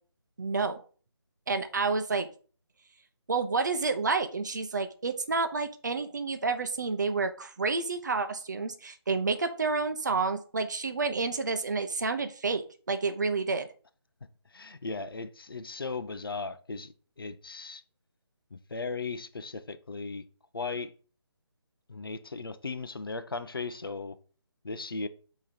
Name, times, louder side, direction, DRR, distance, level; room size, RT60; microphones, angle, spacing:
voice 1, 0.4-0.8 1.5-2.3 3.3-12.6 12.9-13.7, right 4 dB, 45° right, 0.7 m, -29 dB
voice 2, 14.5-17.8 18.5-20.2 20.5-20.9 21.9-24.2 24.6-25.1, left 4 dB, 55° left, 0.6 m, -37 dB
8.3 x 3.0 x 4.2 m
figure-of-eight pair, 155°, 14 cm